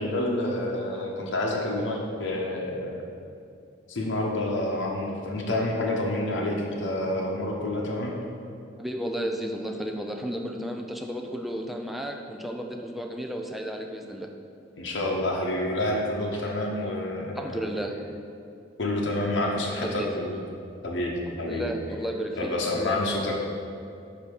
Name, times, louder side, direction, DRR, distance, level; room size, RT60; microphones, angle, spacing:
voice 1, 0.0-3.0 3.9-8.1 14.8-17.6 18.8-20.4 20.8-21.6 22.4-23.4, left 1 dB, 80° left, -2 dB, 0.8 m, -28 dB
voice 2, 8.8-14.3 17.4-18.0 19.8-20.1 21.3-23.2, equal, ahead, 2 dB, 0.4 m, -33 dB
8.5 x 2.8 x 6.3 m, 2.5 s
head